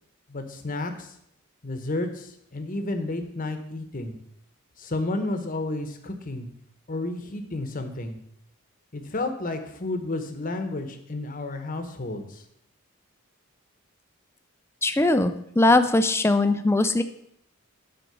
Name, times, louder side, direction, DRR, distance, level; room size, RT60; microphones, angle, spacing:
voice 1, 0.3-1.1 1.6-4.1 4.8-6.5 6.9-8.2 8.9-12.4, left 2 dB, 40° left, 6 dB, 1.0 m, -31 dB
voice 2, 14.8-17.0, left 2 dB, 10° left, 9 dB, 0.4 m, -20 dB
9.3 x 4.3 x 6.8 m, 0.71 s
head